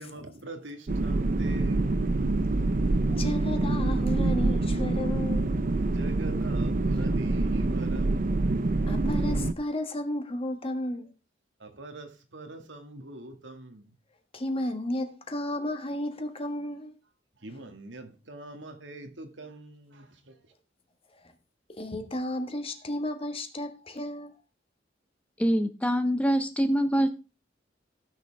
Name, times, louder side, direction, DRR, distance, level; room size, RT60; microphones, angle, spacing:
voice 1, 0.0-2.2 5.8-8.6 11.6-13.8 17.4-20.1, right 2 dB, 80° right, 1.9 m, -44 dB
sound 1, 0.9-9.5, right 2 dB, 50° right, 0.6 m, -26 dB
voice 2, 3.1-5.6 8.9-11.1 14.3-16.9 17.5-17.6 21.1-21.3 21.7-24.3, left 1 dB, 30° left, 1.6 m, -33 dB
voice 3, 25.4-27.1, equal, 5° left, 0.7 m, -24 dB
16.0 x 6.7 x 3.4 m
head